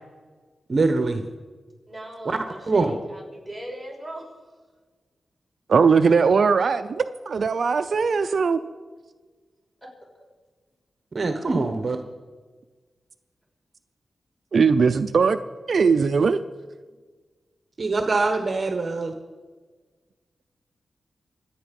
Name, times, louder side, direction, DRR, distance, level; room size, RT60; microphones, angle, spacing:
voice 1, 0.7-1.2 2.3-2.4 2.7-2.8 11.1-12.0 17.8-19.1, right 3 dB, 45° right, 6 dB, 1.1 m, -23 dB
voice 2, 1.9-4.6 10.1-10.2, right 1 dB, ahead, -2 dB, 6.3 m, -39 dB
voice 3, 5.7-8.6 14.5-15.4 15.7-16.4, right 5 dB, 65° right, 10 dB, 0.5 m, -19 dB
25.0 x 9.1 x 5.3 m, 1.4 s
wide cardioid pair, 85°, 0 cm